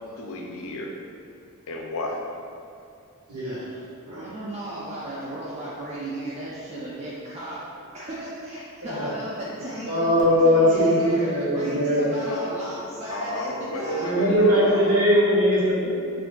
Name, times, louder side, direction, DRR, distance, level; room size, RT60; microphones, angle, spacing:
voice 1, 0.2-0.9 1.7-2.2 12.2-12.6 13.1-14.9, left 1 dB, 65° left, 1 dB, 0.5 m, -32 dB
voice 2, 3.3-3.7 4.0-4.3 8.8-9.1 9.8-12.1 14.0-15.9, equal, 85° right, -9 dB, 1.3 m, -20 dB
voice 3, 4.1-7.6 7.9-14.1, right 1 dB, 30° right, -8 dB, 0.4 m, -35 dB
5.9 x 2.6 x 2.2 m, 2.5 s
head